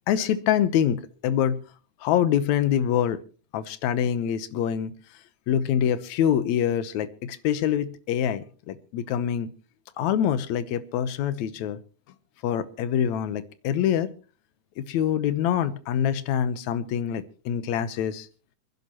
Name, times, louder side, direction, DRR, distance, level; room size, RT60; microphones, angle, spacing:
voice 1, 0.1-1.6 2.0-3.2 3.5-4.9 5.5-9.5 10.0-11.8 12.4-14.1 14.8-18.3, left 9 dB, 70° left, 13 dB, 2.2 m, -25 dB
28.0 x 10.5 x 3.0 m, 0.37 s
omnidirectional pair, 3.6 m